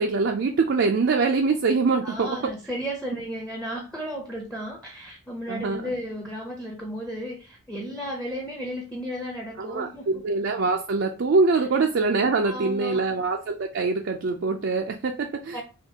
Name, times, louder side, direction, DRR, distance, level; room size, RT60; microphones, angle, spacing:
voice 1, 0.0-2.5 5.5-5.9 9.6-15.6, right 4 dB, 55° right, 3 dB, 0.4 m, -24 dB
voice 2, 2.0-10.2 12.4-13.2 15.5-15.6, equal, 5° left, 0 dB, 0.6 m, -34 dB
5.7 x 2.4 x 2.8 m, 0.34 s
head